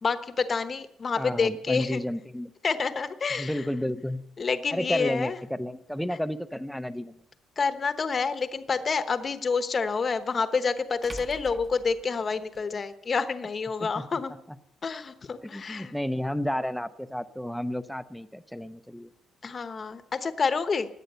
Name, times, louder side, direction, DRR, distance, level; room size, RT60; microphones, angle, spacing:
voice 1, 0.0-2.0 2.6-3.6 4.4-5.4 7.6-14.3 14.8-15.9 19.4-20.9, left 5 dB, 30° left, 10 dB, 1.0 m, -28 dB
voice 2, 1.2-2.5 3.4-4.2 4.7-7.2 13.8-14.0 15.4-19.1, left 1 dB, ahead, 12 dB, 0.7 m, -31 dB
sound 1, 7.2-7.3 9.9-10.0 11.0-12.6, right 2 dB, 20° right, 1.1 m, -44 dB
17.0 x 10.5 x 6.8 m, 0.77 s
cardioid pair, 150°, 0 cm